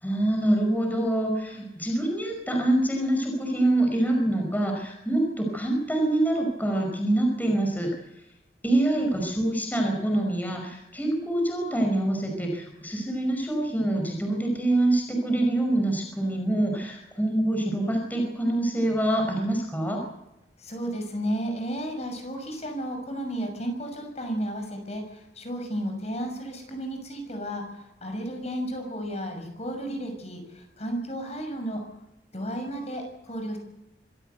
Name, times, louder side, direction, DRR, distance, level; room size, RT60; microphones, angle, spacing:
voice 1, 0.0-7.9 8.6-20.0, right 1 dB, 10° left, 2 dB, 5.3 m, -25 dB
voice 2, 20.6-31.8 32.3-33.6, right 1 dB, 40° left, 4 dB, 6.1 m, -33 dB
25.5 x 15.5 x 8.1 m, 0.94 s
head